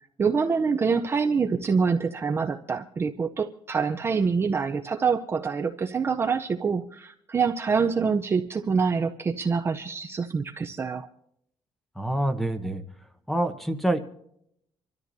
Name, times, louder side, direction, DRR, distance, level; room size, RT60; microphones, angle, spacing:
voice 1, 0.2-11.1, right 5 dB, 25° right, 5 dB, 0.6 m, -25 dB
voice 2, 12.0-12.8 13.3-14.0, right 1 dB, ahead, 9 dB, 1.0 m, -26 dB
26.5 x 13.0 x 2.7 m, 0.72 s
cardioid pair, 165°, 10 cm